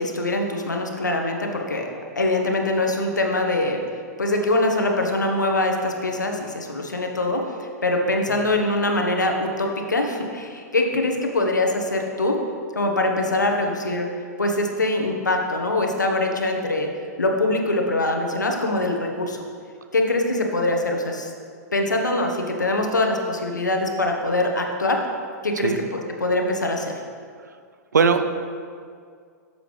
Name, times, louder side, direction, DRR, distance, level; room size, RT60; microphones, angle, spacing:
voice 1, 0.0-1.9 2.1-3.8 4.2-12.4 12.7-14.1 14.4-16.9 17.2-19.4 19.9-21.3 21.7-25.0 25.4-26.9, left 2 dB, 85° left, 2 dB, 1.3 m, -23 dB
voice 2, 27.9-28.2, right 5 dB, 80° right, 8 dB, 0.7 m, -19 dB
13.0 x 7.0 x 3.3 m, 2.1 s
figure-of-eight pair, 105°, 10 cm